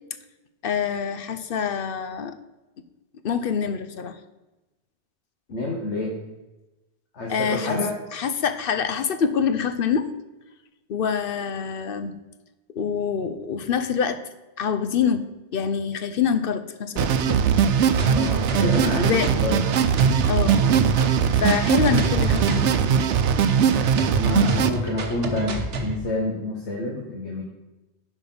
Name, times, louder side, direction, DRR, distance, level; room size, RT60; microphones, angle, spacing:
voice 1, 0.6-2.4 3.2-4.1 7.3-7.8 8.1-10.1 10.9-12.1 12.7-14.2 14.6-15.2 15.5-17.4 19.0-19.3 20.3-20.6 21.3-22.8 24.3-24.6, left 7 dB, 60° left, 10 dB, 0.8 m, -25 dB
voice 2, 5.5-6.1 7.1-7.9 18.0-19.6 23.9-27.4, left 2 dB, 80° left, -2 dB, 1.7 m, -28 dB
sound 1, 17.0-24.7, right 7 dB, 90° right, 0.9 m, -20 dB
sound 2, 18.0-26.0, right 2 dB, 65° right, 1.2 m, -30 dB
11.0 x 5.1 x 5.6 m, 1.1 s
omnidirectional pair, 1.2 m